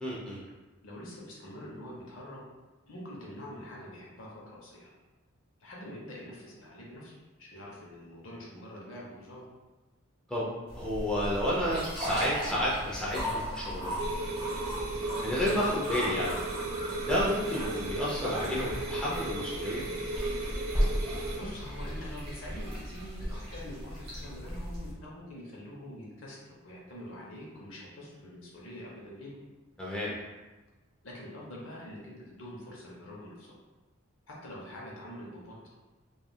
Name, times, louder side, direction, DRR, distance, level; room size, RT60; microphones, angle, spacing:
voice 1, 0.0-0.4 10.3-10.5 10.7-14.0 15.2-16.3 17.1-19.8 29.8-30.1, equal, 5° left, -7 dB, 0.5 m, -31 dB
voice 2, 0.8-2.4 2.8-4.9 5.6-9.4 21.3-29.4 31.0-33.5 34.3-35.5, left 1 dB, 65° left, -4 dB, 0.7 m, -45 dB
sound 1, 10.7-24.9, equal, 25° right, 1.0 m, -36 dB
sound 2, 14.0-21.4, right 2 dB, 75° right, 0.6 m, -36 dB
3.3 x 2.3 x 2.3 m, 1.2 s
head